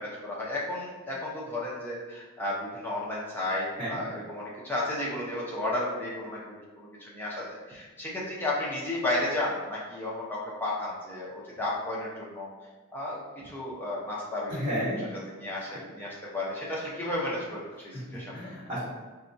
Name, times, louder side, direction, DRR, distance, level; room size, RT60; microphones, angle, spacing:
voice 1, 0.0-12.5 12.9-14.6 15.4-18.4, left 1 dB, 10° left, -6 dB, 0.5 m, -33 dB
voice 2, 14.5-15.0 15.5-15.6 17.9-18.8, equal, 30° right, -13 dB, 1.0 m, -33 dB
4.0 x 2.2 x 2.6 m, 1.3 s
head